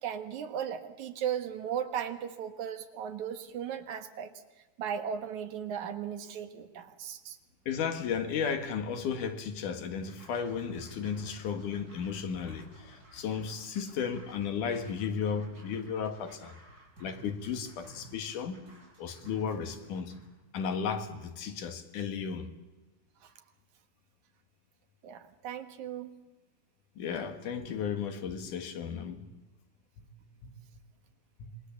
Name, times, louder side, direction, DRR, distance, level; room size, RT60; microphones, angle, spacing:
voice 1, 0.0-4.3 4.8-7.4 23.2-23.3 25.0-26.2, right 8 dB, 70° right, 2.7 m, -36 dB
voice 2, 7.7-16.5 17.0-18.6 19.0-20.1 20.5-22.5 27.0-29.2 30.0-30.1 30.4-30.5 31.4-31.5, left 6 dB, 85° left, 3.3 m, -34 dB
Scratching (performance technique), 10.0-20.3, right 1 dB, 30° right, 6.6 m, -55 dB
26.0 x 23.0 x 7.2 m
omnidirectional pair, 3.5 m